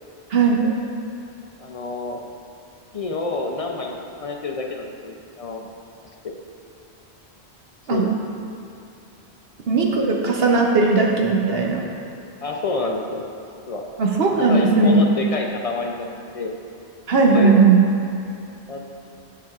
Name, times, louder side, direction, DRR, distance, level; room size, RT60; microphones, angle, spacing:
voice 1, 0.3-0.7 7.9-8.1 9.7-11.9 14.0-15.0 17.1-17.8, right 4 dB, 70° right, 0 dB, 0.9 m, -17 dB
voice 2, 1.6-2.2 2.9-5.7 6.2-6.3 7.9-8.1 12.4-13.3 13.7-13.9 14.3-16.6 17.3-17.5 18.7-18.8, left 3 dB, 50° left, 1 dB, 0.4 m, -28 dB
9.0 x 6.8 x 2.4 m, 2.5 s
omnidirectional pair, 1.1 m